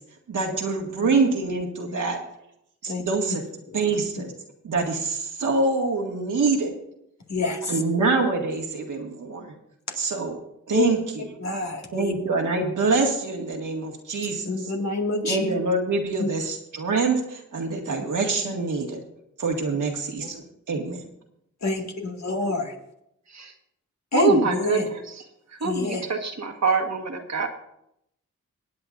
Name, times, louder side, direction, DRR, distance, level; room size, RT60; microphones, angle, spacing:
voice 1, 0.3-2.2 2.8-3.4 3.7-4.3 4.6-6.7 7.7-9.5 10.0-10.4 10.7-11.3 11.9-14.5 15.2-19.0 19.4-21.0, right 3 dB, 85° right, 1 dB, 1.9 m, -25 dB
voice 2, 7.3-7.8 9.9-10.0 10.7-10.9 11.4-12.1 14.4-15.5 16.2-16.3 20.2-20.3 21.6-22.7 24.1-24.9 25.6-26.0, left 3 dB, 60° left, 1 dB, 2.1 m, -27 dB
voice 3, 24.1-24.8 25.6-27.5, right 4 dB, 60° right, 5 dB, 1.5 m, -24 dB
23.5 x 8.8 x 2.6 m, 0.79 s
cardioid pair, 55°, 30 cm